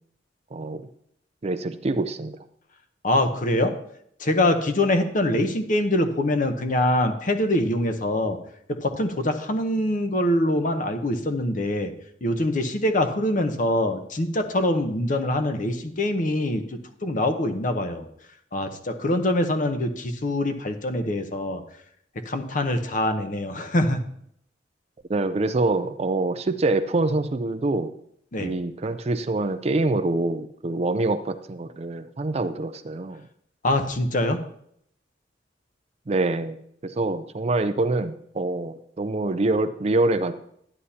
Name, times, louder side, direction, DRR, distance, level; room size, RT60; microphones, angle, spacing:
voice 1, 0.5-0.8 1.4-2.4 25.1-27.9 28.4-33.2 36.1-40.3, right 2 dB, 35° right, 11 dB, 0.5 m, -25 dB
voice 2, 3.0-3.8 4.2-8.4 8.7-11.9 12.2-18.1 18.5-21.6 22.1-24.0 28.3-28.5 33.6-34.4, left 1 dB, 45° left, 7 dB, 0.9 m, -24 dB
11.0 x 9.9 x 2.8 m, 0.70 s
head